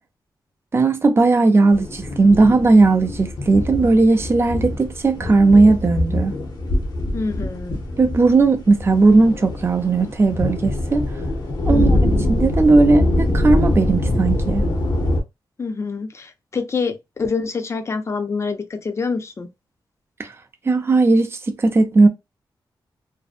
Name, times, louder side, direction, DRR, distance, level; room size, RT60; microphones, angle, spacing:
voice 1, 0.7-6.3 8.0-11.1 11.7-12.0 12.3-14.6 20.2-20.3 20.7-22.1, right 3 dB, 30° right, 0.5 m, -16 dB
sound 1, 1.7-15.2, left 1 dB, 60° left, 0.8 m, -23 dB
voice 2, 7.1-7.8 11.7-12.2 15.6-19.5, left 4 dB, 35° left, 0.5 m, -26 dB
2.6 x 2.1 x 2.4 m
wide cardioid pair, 95°, 8 cm